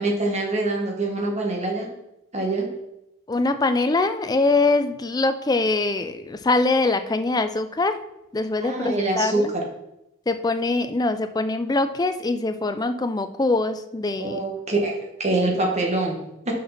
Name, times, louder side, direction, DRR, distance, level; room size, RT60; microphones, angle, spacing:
voice 1, 0.0-1.9 2.3-2.7 8.6-9.7 14.2-16.5, right 2 dB, 30° right, 1 dB, 1.4 m, -25 dB
voice 2, 3.3-8.0 8.3-9.5 10.3-14.4, left 3 dB, 20° left, 10 dB, 0.4 m, -23 dB
6.5 x 5.6 x 5.8 m, 0.90 s
head